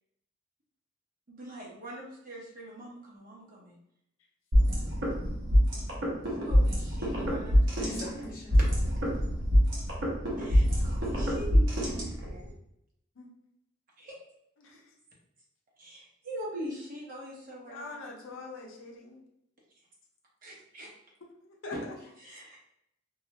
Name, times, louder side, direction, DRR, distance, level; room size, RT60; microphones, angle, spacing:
voice 1, 1.3-3.8 6.3-7.7 10.4-12.5 14.0-14.2 15.8-17.9 20.4-20.9 22.2-22.6, equal, 45° right, -4 dB, 0.8 m, -43 dB
sound 1, 4.5-12.5, equal, 70° right, 0.9 m, -25 dB
voice 2, 7.8-8.6 9.6-9.7 21.7-22.6, equal, 50° left, -3 dB, 0.8 m, -42 dB
voice 3, 17.6-19.2 21.4-21.7, left 3 dB, 75° left, 0 dB, 0.6 m, -43 dB
2.3 x 2.0 x 2.9 m, 0.78 s
head